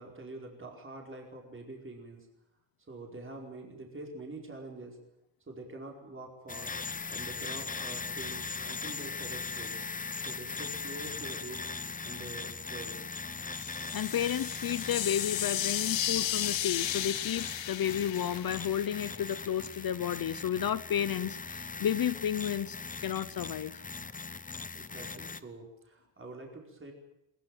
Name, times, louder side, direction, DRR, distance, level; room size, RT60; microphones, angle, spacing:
voice 1, 0.0-2.3 2.8-5.0 5.5-6.8 7.1-9.8 10.2-11.6 12.0-13.2 24.7-26.9, right 2 dB, 25° right, 0 dB, 4.9 m, -45 dB
sound 1, 6.5-25.4, left 4 dB, 20° left, 0.8 m, -40 dB
voice 2, 13.5-22.8 23.0-23.8, left 10 dB, 50° left, 16 dB, 0.7 m, -32 dB
sound 2, 13.6-19.5, left 12 dB, 75° left, 1.0 m, -34 dB
21.5 x 20.5 x 7.9 m, 0.88 s
wide cardioid pair, 145°, 45 cm